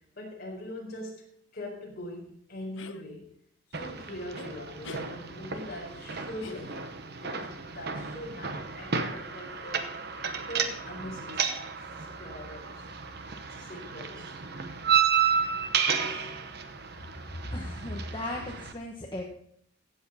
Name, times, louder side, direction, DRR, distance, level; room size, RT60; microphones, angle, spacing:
voice 1, 0.1-1.3 1.5-3.3 3.7-6.8 7.1-9.9 10.5-11.7 12.2-12.9 13.5-14.3 15.3-15.4 16.0-16.4 16.9-17.1, left 1 dB, 45° left, -2 dB, 4.4 m, -42 dB
sound 1, 2.8-3.0 4.3-4.5 4.8-5.1 6.4-7.1, left 4 dB, 60° left, 0.8 m, -44 dB
sound 2, 3.7-18.7, right 7 dB, 50° right, 1.0 m, -32 dB
voice 2, 17.4-19.2, left 1 dB, 20° left, -1 dB, 1.2 m, -36 dB
15.5 x 7.8 x 4.2 m, 0.67 s
head